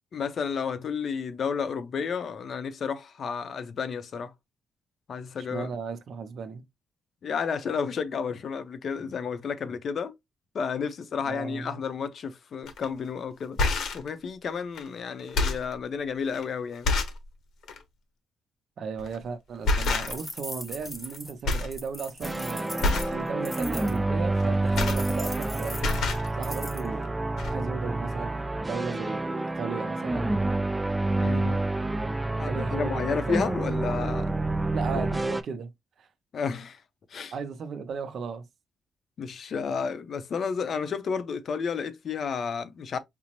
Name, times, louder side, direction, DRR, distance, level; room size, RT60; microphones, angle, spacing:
voice 1, 0.1-4.3 5.1-5.7 7.2-10.1 10.5-13.6 13.9-16.9 31.1-31.6 32.4-34.4 36.3-36.8 37.1-37.3 39.2-43.0, left 6 dB, 50° left, 0.6 m, -31 dB
voice 2, 5.5-6.6 11.2-11.8 18.8-26.1 26.3-27.2 27.5-30.3 32.5-33.4 34.7-35.7 36.0-36.1 37.3-38.5, right 5 dB, 55° right, 0.6 m, -36 dB
sound 1, 12.7-12.9 13.4-14.1 14.8-14.9 15.2-15.7 16.3-16.4 16.8-17.2 17.6-17.8 19.0-19.2 19.6-20.4 20.7-21.2 21.4-21.8 22.1-22.3 22.8-23.2 24.4-25.5 25.7-26.3 27.1-27.2 27.4-27.5, left 2 dB, 75° left, 0.8 m, -27 dB
sound 2, 19.8-24.0 24.8-26.9, left 1 dB, 10° left, 0.7 m, -40 dB
sound 3, 22.2-35.4, right 2 dB, 10° right, 0.3 m, -28 dB
5.1 x 2.0 x 2.9 m
cardioid pair, 145°, 0 cm